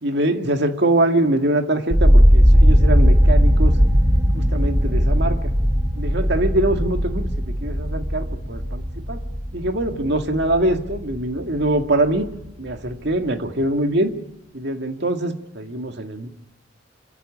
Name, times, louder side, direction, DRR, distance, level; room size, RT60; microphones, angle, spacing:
voice 1, 0.0-3.7 4.3-5.4 6.0-9.2 9.5-12.3 12.6-14.1 14.5-16.3, right 1 dB, 60° right, 6 dB, 2.1 m, -23 dB
sound 1, 1.9-11.9 12.2-12.9, equal, 15° right, 2.3 m, -18 dB
26.5 x 14.5 x 9.8 m, 0.91 s
head